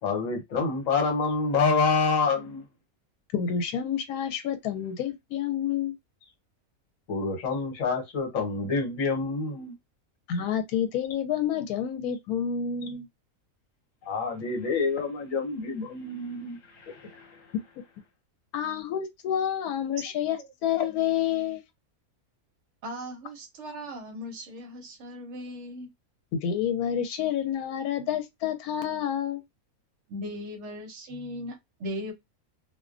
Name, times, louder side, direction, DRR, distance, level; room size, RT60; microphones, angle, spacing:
voice 1, 0.0-2.6 7.1-9.7 14.0-17.4, left 4 dB, 65° left, 1.3 m, -27 dB
voice 2, 3.3-5.9 10.3-13.1 18.5-21.6 26.3-29.4, left 9 dB, 85° left, 1.1 m, -29 dB
voice 3, 22.8-25.9 30.1-32.1, equal, 65° right, 0.8 m, -38 dB
2.4 x 2.1 x 2.4 m
omnidirectional pair, 1.5 m